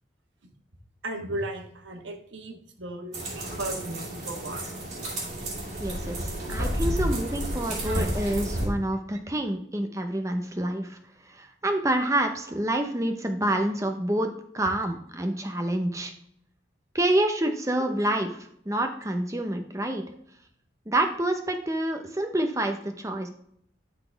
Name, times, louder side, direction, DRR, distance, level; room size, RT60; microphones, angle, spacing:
voice 1, 1.0-4.7 7.8-8.0 17.4-17.5, right 1 dB, 90° right, 4 dB, 1.3 m, -36 dB
sound 1, 3.1-8.7, right 1 dB, 40° right, 2.8 m, -31 dB
voice 2, 5.8-11.0 11.3-16.1 16.9-18.4 18.7-20.0 20.9-23.3, right 1 dB, 15° right, 5 dB, 0.8 m, -27 dB
12.5 x 4.2 x 3.4 m, 0.67 s
head